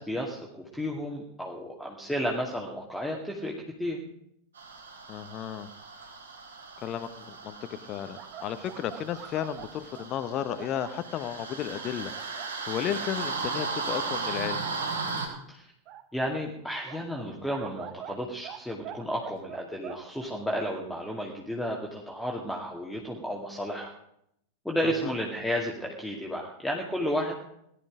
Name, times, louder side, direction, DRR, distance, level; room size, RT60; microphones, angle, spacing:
voice 1, 0.0-3.5 3.8-4.0 15.5-15.7 16.1-23.9 24.6-27.3, equal, ahead, -1 dB, 2.3 m, -32 dB
sound 1, 4.6-15.3, right 4 dB, 70° right, 3.9 m, -36 dB
voice 2, 5.1-5.7 6.0-6.1 6.8-7.5 7.8-14.7 24.8-25.1, left 10 dB, 35° left, 11 dB, 1.1 m, -34 dB
sound 2, 8.2-11.0 11.7-12.5 13.0-13.1 13.5-13.8 14.4-14.5 15.9-16.0 16.9-18.6 18.8-20.3, right 11 dB, 40° right, 1.3 m, -44 dB
18.5 x 12.5 x 5.1 m, 0.74 s
figure-of-eight pair, 90°, 0 cm